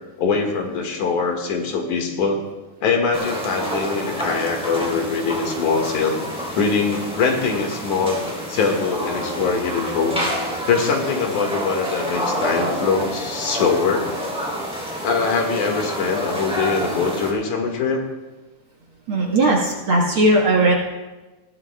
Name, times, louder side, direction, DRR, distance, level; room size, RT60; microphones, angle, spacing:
voice 1, 0.2-2.4 2.8-6.2 6.5-8.2 8.5-10.3 10.7-14.1 15.0-18.0, left 5 dB, 75° left, 2 dB, 3.0 m, -22 dB
sound 1, 3.1-17.3, equal, ahead, 2.9 m, -28 dB
voice 2, 19.1-20.7, right 2 dB, 55° right, -2 dB, 1.7 m, -17 dB
20.5 x 15.0 x 2.2 m, 1.2 s
omnidirectional pair, 3.6 m